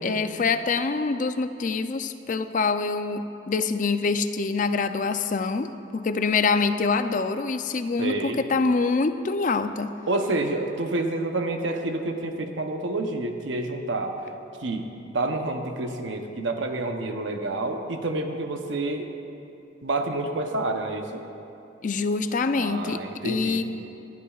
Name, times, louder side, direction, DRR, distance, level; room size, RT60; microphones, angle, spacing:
voice 1, 0.0-9.9 21.8-23.6, left 4 dB, 45° left, 10 dB, 0.4 m, -25 dB
voice 2, 8.0-8.4 10.1-14.1 14.6-14.9 15.1-19.1 19.8-21.2 22.5-23.6, right 2 dB, 85° right, 5 dB, 0.8 m, -28 dB
20.0 x 12.0 x 2.4 m, 2.8 s
head